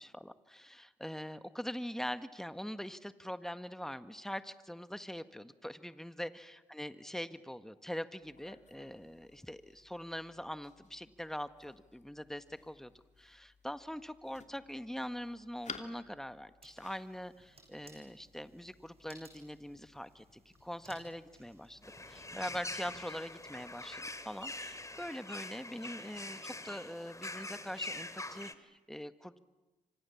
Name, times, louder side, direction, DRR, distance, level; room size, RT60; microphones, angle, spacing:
voice 1, 0.0-12.9 13.2-21.8 22.1-29.4, equal, ahead, 11 dB, 1.7 m, -43 dB
sound 1, 8.2-25.1, left 4 dB, 45° left, 2.8 m, -57 dB
sound 2, 16.6-23.9, right 3 dB, 35° right, 7.6 m, -61 dB
sound 3, 21.8-28.5, left 2 dB, 20° left, 2.7 m, -44 dB
29.0 x 25.5 x 7.3 m, 1.1 s
hypercardioid pair, 45°, 17 cm